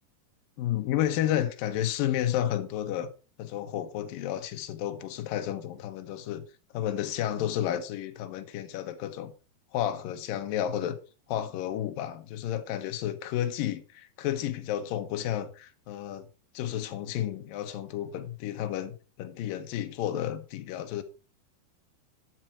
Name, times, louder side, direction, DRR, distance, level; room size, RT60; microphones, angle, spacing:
voice 1, 0.6-3.1 3.4-6.4 6.7-9.3 9.7-11.0 11.3-16.3 16.5-21.0, left 11 dB, 70° left, 2.6 m, -31 dB
12.0 x 7.8 x 4.4 m
omnidirectional pair, 4.7 m